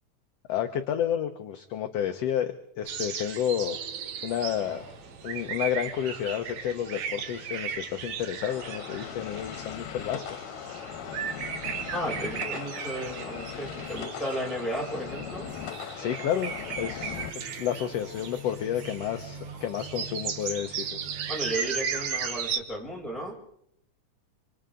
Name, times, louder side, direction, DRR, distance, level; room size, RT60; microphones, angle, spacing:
voice 1, 0.5-3.8 4.2-4.9 5.2-10.2 16.0-16.5 16.8-21.0, left 10 dB, 65° left, 6 dB, 1.7 m, -30 dB
sound 1, 2.9-22.6, right 7 dB, 65° right, 2.5 m, -36 dB
sound 2, 4.3-21.6, right 2 dB, 45° right, 6.3 m, -48 dB
sound 3, 8.5-17.3, left 10 dB, 90° left, 2.6 m, -39 dB
voice 2, 11.9-15.5 21.3-23.3, right 1 dB, ahead, -3 dB, 6.5 m, -34 dB
26.0 x 26.0 x 3.8 m, 0.71 s
omnidirectional pair, 3.8 m